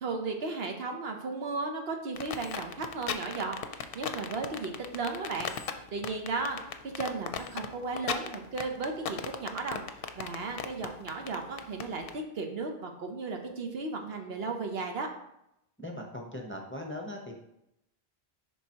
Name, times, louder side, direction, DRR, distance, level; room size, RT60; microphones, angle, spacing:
voice 1, 0.0-9.8 10.2-15.1, right 3 dB, 75° right, 4 dB, 1.1 m, -35 dB
sound 1, 2.2-12.1, left 8 dB, 65° left, 0.7 m, -36 dB
voice 2, 15.8-17.3, left 1 dB, 15° left, 0 dB, 0.7 m, -39 dB
10.5 x 3.7 x 2.9 m, 0.82 s
omnidirectional pair, 1.1 m